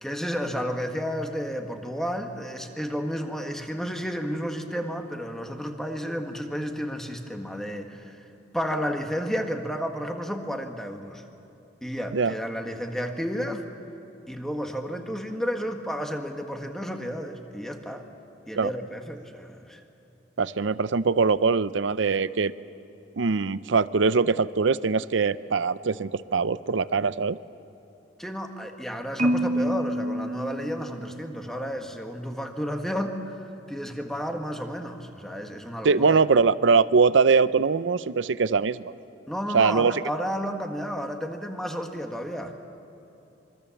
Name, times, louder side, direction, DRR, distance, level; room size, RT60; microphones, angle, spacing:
voice 1, 0.0-8.2 8.5-11.2 11.8-13.6 14.3-18.1 18.5-19.8 28.2-36.2 39.3-42.7, equal, ahead, 4 dB, 1.7 m, -32 dB
voice 2, 20.4-22.5 23.2-27.4 35.8-38.8 39.5-40.0, right 5 dB, 80° right, 15 dB, 0.6 m, -22 dB
Marimba xylophone, 29.2-31.4, right 1 dB, 40° right, 1.1 m, -27 dB
26.0 x 24.0 x 7.2 m, 3.0 s
head